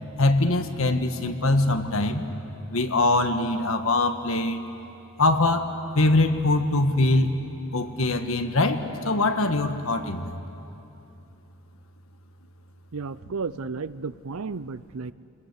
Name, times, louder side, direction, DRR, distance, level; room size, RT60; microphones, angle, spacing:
voice 1, 0.2-2.2 2.7-4.6 5.2-7.3 7.7-10.4, left 2 dB, 70° left, 7 dB, 1.5 m, -23 dB
voice 2, 12.9-15.1, right 4 dB, 80° right, 17 dB, 0.6 m, -33 dB
28.5 x 21.0 x 8.2 m, 2.8 s
head